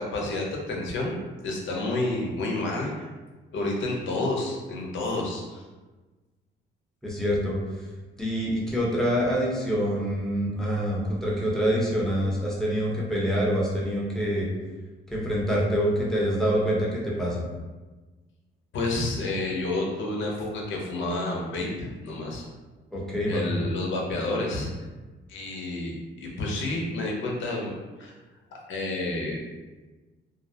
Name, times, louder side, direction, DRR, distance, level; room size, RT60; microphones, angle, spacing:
voice 1, 0.0-3.1 3.5-5.6 18.7-22.4 23.3-24.7 25.3-28.1 28.7-29.4, left 2 dB, 75° left, -2 dB, 0.7 m, -30 dB
voice 2, 7.0-7.6 8.2-14.5 15.1-17.4 22.9-23.6, equal, ahead, -6 dB, 0.8 m, -26 dB
2.5 x 2.0 x 2.7 m, 1.2 s
cardioid pair, 90°, 20 cm